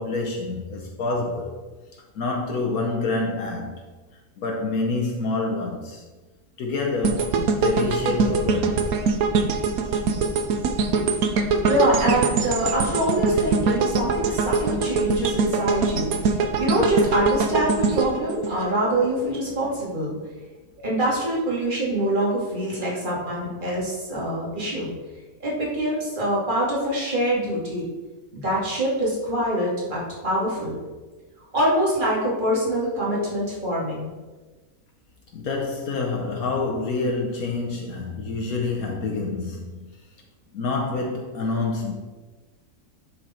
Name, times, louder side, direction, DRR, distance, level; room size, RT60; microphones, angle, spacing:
voice 1, 0.0-1.5 2.1-3.8 4.4-6.0 6.6-8.8 35.3-39.9 40.5-41.9, left 3 dB, 70° left, 1 dB, 1.3 m, -27 dB
sound 1, 7.0-19.2 19.6-19.8, right 4 dB, 70° right, 1.2 m, -23 dB
voice 2, 11.7-20.1 20.8-24.9 25.4-27.8 28.3-30.7 31.5-34.1, right 1 dB, 30° right, -6 dB, 2.6 m, -24 dB
10.5 x 4.8 x 4.4 m, 1.3 s
omnidirectional pair, 1.6 m